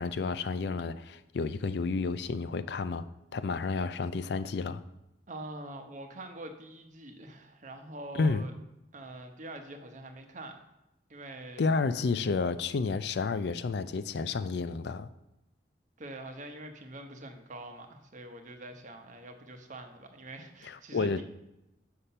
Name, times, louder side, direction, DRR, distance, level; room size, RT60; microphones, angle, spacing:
voice 1, 0.0-3.1 3.3-4.8 8.2-8.5 11.6-15.1 20.6-21.2, left 4 dB, 65° left, 0.4 m, -31 dB
voice 2, 5.3-8.5 8.9-10.6 11.1-11.7 16.0-21.2, right 1 dB, 45° right, 0.9 m, -44 dB
6.7 x 5.8 x 5.5 m
head